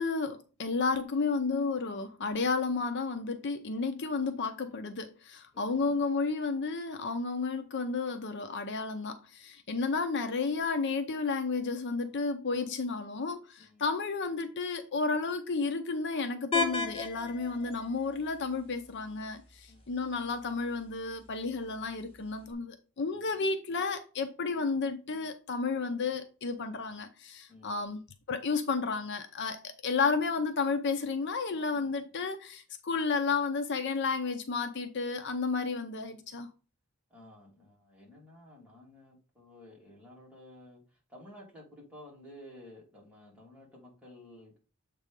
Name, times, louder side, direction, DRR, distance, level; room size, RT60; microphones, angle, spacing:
voice 1, 0.0-28.0 28.3-36.5, left 4 dB, 55° left, 0.7 m, -32 dB
voice 2, 5.7-6.0 9.7-9.9 13.6-13.8 17.3-17.4 19.7-20.1 23.1-23.5 27.5-28.0 31.7-32.2 37.1-40.8 41.1-44.6, left 1 dB, 5° right, 2.8 m, -53 dB
sound 1, 16.5-22.5, left 3 dB, 25° left, 1.0 m, -38 dB
7.4 x 3.4 x 5.2 m
head